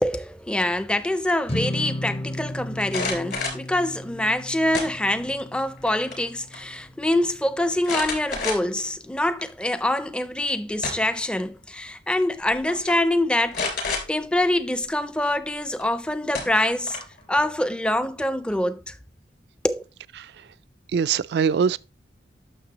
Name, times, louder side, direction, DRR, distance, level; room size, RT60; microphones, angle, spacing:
voice 1, 0.0-13.7 14.1-17.0 17.3-19.0 19.6-19.8, left 1 dB, 5° left, 0.4 m, -25 dB
sound 1, 1.5-7.9, left 1 dB, 35° left, 0.8 m, -35 dB
sound 2, 2.8-3.7 4.7-5.3 5.7-6.3 6.5-6.6 7.8-8.8 9.4-9.5 10.5-11.2 12.2-12.4 12.7-13.0 13.5-14.0 15.8-15.9 16.3-17.2, left 4 dB, 60° left, 3.2 m, -29 dB
voice 2, 20.9-21.8, right 6 dB, 65° right, 0.3 m, -22 dB
9.9 x 6.5 x 2.9 m
head